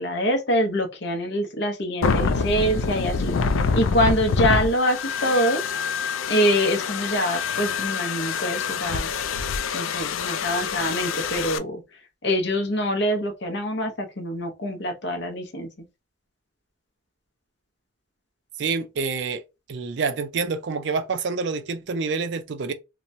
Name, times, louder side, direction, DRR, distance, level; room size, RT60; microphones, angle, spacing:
voice 1, 0.0-3.3 3.7-5.6 6.3-9.1 9.7-11.8 12.2-15.7, equal, 55° left, 0.7 m, -25 dB
sound 1, 2.0-11.6, left 5 dB, 80° left, 0.3 m, -26 dB
voice 2, 18.6-19.4 19.7-22.7, right 4 dB, 60° right, 0.4 m, -27 dB
2.9 x 2.2 x 2.6 m
head